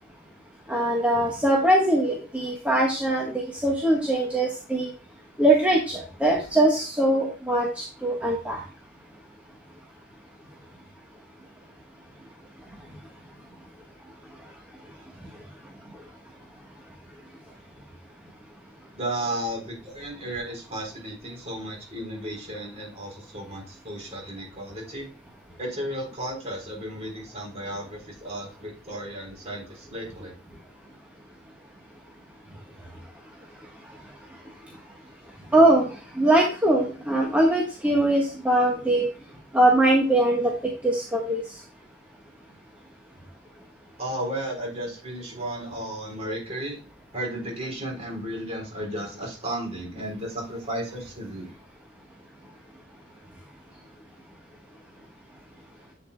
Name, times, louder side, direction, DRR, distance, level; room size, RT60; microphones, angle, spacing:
voice 1, 0.7-4.9 5.4-8.6 35.5-39.1 39.5-40.5 40.8-41.4, right 1 dB, 10° right, -2 dB, 1.3 m, -22 dB
voice 2, 18.9-25.1 25.6-30.3 44.0-46.8 47.1-51.6, right 1 dB, 35° right, -1 dB, 3.9 m, -34 dB
8.4 x 7.1 x 2.2 m, 0.35 s
head